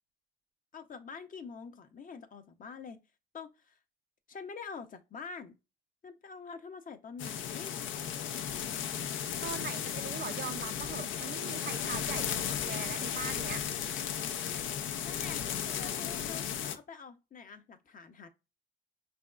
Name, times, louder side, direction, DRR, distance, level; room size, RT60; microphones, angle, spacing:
voice 1, 0.7-3.0 3.3-3.8 4.3-5.6 6.0-7.7 15.0-18.3, left 5 dB, 45° left, 0.7 m, -46 dB
sound 1, 7.2-16.8, left 9 dB, 80° left, 0.5 m, -35 dB
voice 2, 9.4-13.6, right 9 dB, 55° right, 0.4 m, -41 dB
5.2 x 3.4 x 2.3 m
cardioid pair, 90°, 20 cm